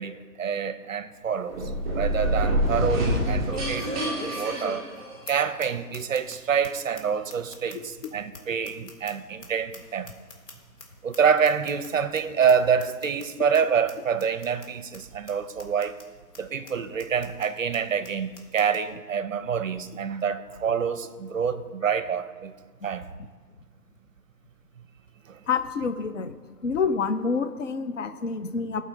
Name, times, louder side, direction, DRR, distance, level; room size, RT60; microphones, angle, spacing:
voice 1, 0.0-1.6 1.9-3.9 4.2-4.8 5.3-10.1 11.0-16.0 16.4-22.5 22.8-23.1 25.3-25.4, right 7 dB, 55° right, 0.6 m, -26 dB
sound 1, 1.1-1.2 1.7-1.8 3.5-5.0 5.3-5.4 5.6-5.7 5.9-6.3 6.6-6.7 7.0-7.1 7.3-9.5 9.7-10.8 11.1-11.2 11.4-11.9 12.1-12.2 12.5-12.6 12.8-13.2 13.5-13.6 13.9-14.0 14.2-14.7 14.9-15.0 15.3-15.4 15.6-16.0 16.3-16.4 16.7-16.8 17.0-17.5 17.7-17.8 18.0-18.1 18.3-18.8, left 1 dB, 85° left, 2.1 m, -39 dB
sound 2, 1.5-5.5, equal, 25° right, 2.5 m, -27 dB
voice 2, 25.5-26.4 26.6-28.8, left 5 dB, 55° left, 0.5 m, -27 dB
16.0 x 5.4 x 3.9 m
hypercardioid pair, 180°, 47 cm